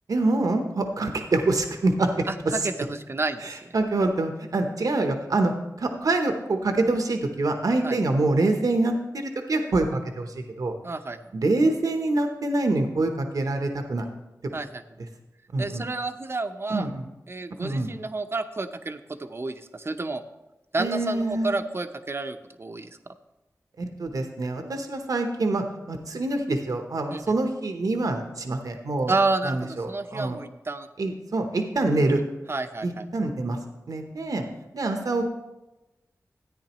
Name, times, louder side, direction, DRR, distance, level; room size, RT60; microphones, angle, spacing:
voice 1, 0.1-2.7 3.4-10.7 11.3-14.1 15.5-15.8 16.7-17.1 17.6-17.9 20.8-21.6 23.8-29.1 29.4-30.4 31.0-32.2 32.8-33.6 33.9-34.5 34.7-35.2, right 2 dB, 75° right, 5 dB, 0.9 m, -25 dB
voice 2, 2.3-3.7 7.8-7.9 10.8-11.2 14.5-14.8 15.6-16.9 17.3-20.2 20.7-23.1 27.1-27.2 29.1-30.9 32.1-32.2 32.5-33.1, right 3 dB, 45° right, 8 dB, 0.7 m, -30 dB
13.5 x 9.3 x 3.0 m, 1.0 s
wide cardioid pair, 60°, 6 cm